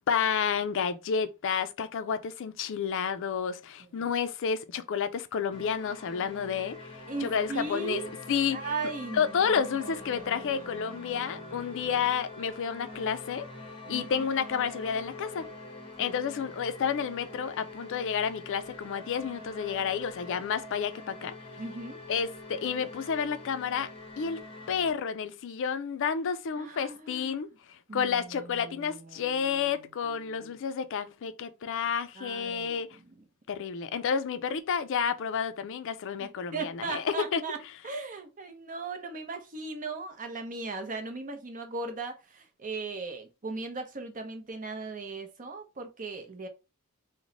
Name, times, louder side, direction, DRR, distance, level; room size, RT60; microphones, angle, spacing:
voice 1, 0.1-8.0 8.3-8.7 9.1-13.5 13.9-15.5 16.0-21.3 22.1-23.9 24.2-24.4 24.7-32.9 33.5-37.4, left 7 dB, 60° left, 0.4 m, -30 dB
sound 1, 5.5-24.9, left 2 dB, 25° left, 0.8 m, -44 dB
voice 2, 7.1-8.1 8.5-12.1 13.9-14.2 16.0-16.2 21.6-22.0 26.6-27.4 27.9-29.7 30.0-30.6 32.2-33.2 36.2-37.6 37.8-46.5, right 3 dB, 35° right, 0.7 m, -38 dB
3.0 x 2.1 x 3.8 m
head